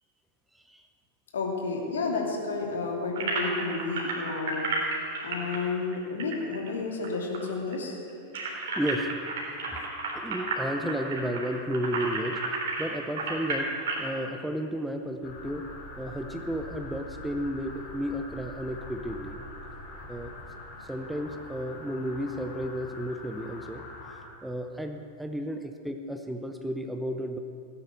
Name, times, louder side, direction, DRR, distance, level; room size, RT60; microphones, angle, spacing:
voice 1, 1.3-4.7 5.2-8.0, left 4 dB, 65° left, 0 dB, 2.8 m, -31 dB
sound 1, 3.2-7.1 7.3-7.4 7.7-14.1, right 3 dB, 55° right, 3.4 m, -32 dB
voice 2, 8.8-9.2 10.1-12.4 12.8-15.7 16.0-19.4 20.1-20.3 20.9-23.8 24.4-27.4, equal, 5° right, 6 dB, 0.9 m, -33 dB
sound 2, 15.2-24.2, left 2 dB, 35° left, 3.4 m, -44 dB
17.5 x 9.5 x 7.8 m, 2.5 s
figure-of-eight pair, 90°, 0 cm